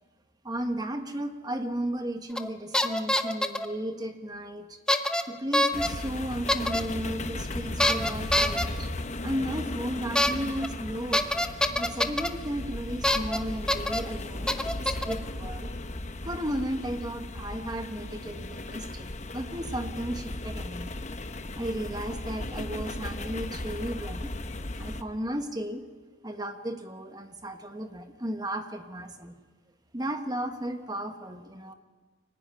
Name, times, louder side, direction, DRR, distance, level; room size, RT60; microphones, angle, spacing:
voice 1, 0.4-4.8 5.3-8.9 9.2-11.2 11.8-15.7 16.2-20.9 21.5-24.3 24.7-25.8 26.2-29.3 29.9-31.7, right 1 dB, 20° right, 6 dB, 1.5 m, -34 dB
sound 1, 2.4-2.5 2.7-3.7 4.9-5.2 5.5-5.9 6.5-6.8 7.8-8.6 10.2-10.3 10.6-10.7 11.1-12.3 13.0-13.4 13.7-14.0 14.5-15.1, left 1 dB, 5° left, 0.8 m, -25 dB
sound 2, 5.7-25.0, left 1 dB, 35° left, 1.0 m, -36 dB
24.5 x 16.0 x 10.0 m, 1.4 s
head